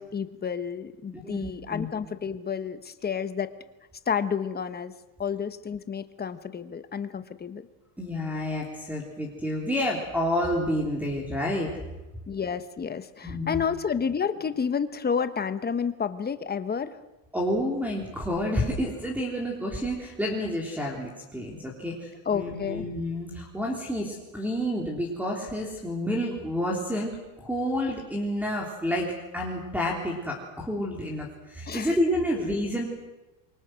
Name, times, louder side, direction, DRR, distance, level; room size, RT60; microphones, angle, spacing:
voice 1, 0.0-3.5 4.1-4.9 5.2-7.7 12.3-17.0 22.2-22.9 31.7-31.9 32.4-32.5, left 6 dB, 20° left, 11 dB, 1.1 m, -30 dB
voice 2, 1.2-1.9 8.0-11.7 13.2-13.6 17.3-29.1 29.3-32.9, equal, 5° right, -1 dB, 3.6 m, -29 dB
28.0 x 24.0 x 6.3 m, 1.0 s
cardioid pair, 145°, 49 cm